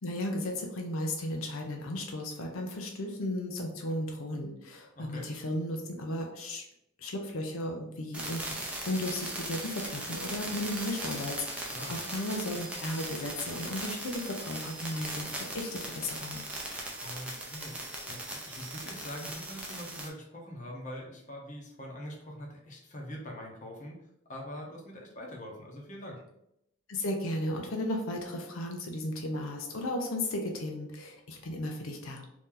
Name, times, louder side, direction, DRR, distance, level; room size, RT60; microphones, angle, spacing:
voice 1, 0.0-6.6 7.0-8.6 8.9-16.4 26.9-32.2, left 1 dB, 85° left, 2 dB, 0.6 m, -35 dB
voice 2, 5.0-5.3 11.7-12.0 17.0-24.0 24.3-26.2, equal, 40° left, -1 dB, 0.8 m, -43 dB
sound 1, 8.1-20.1, right 1 dB, 5° right, 0.5 m, -39 dB
2.9 x 2.6 x 3.7 m, 0.80 s
head